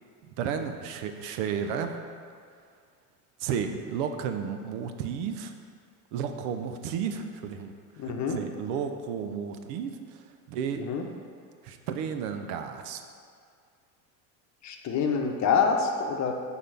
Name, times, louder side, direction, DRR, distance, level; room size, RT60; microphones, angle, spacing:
voice 1, 0.4-1.9 3.4-5.5 6.1-7.7 8.0-10.9 11.6-13.0, right 7 dB, 65° right, 7 dB, 0.8 m, -33 dB
voice 2, 8.0-8.4 10.9-11.0 14.6-16.3, left 5 dB, 35° left, 3 dB, 0.9 m, -26 dB
6.4 x 3.8 x 5.9 m, 2.2 s
hypercardioid pair, 80°, 49 cm